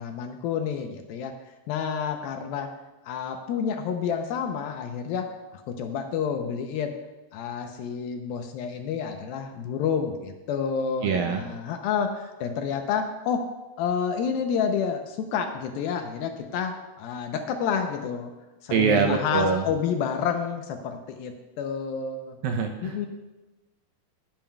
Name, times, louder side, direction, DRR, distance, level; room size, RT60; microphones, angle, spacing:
voice 1, 0.0-1.3 1.7-2.7 3.1-6.9 7.3-13.4 13.8-18.3 18.6-22.4 22.8-23.1, left 7 dB, 75° left, 5 dB, 2.3 m, -29 dB
voice 2, 11.0-11.4 18.7-19.6 22.4-23.1, right 6 dB, 75° right, 3 dB, 2.2 m, -24 dB
19.5 x 8.9 x 2.3 m, 1.1 s
omnidirectional pair, 4.6 m